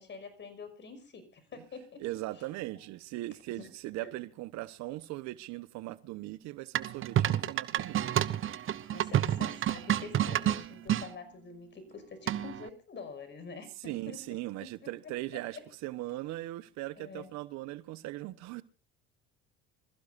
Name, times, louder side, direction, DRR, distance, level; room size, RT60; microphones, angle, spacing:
voice 1, 0.0-2.5 3.6-3.7 4.0-4.1 8.9-15.6 17.0-17.3, left 4 dB, 40° left, 6.1 m, -47 dB
voice 2, 2.0-8.0 13.8-18.6, right 17 dB, 65° right, 1.2 m, -39 dB
sound 1, 6.8-11.1 12.3-12.7, right 11 dB, 45° right, 1.1 m, -29 dB
26.5 x 15.0 x 2.7 m
hypercardioid pair, 80°, 30 cm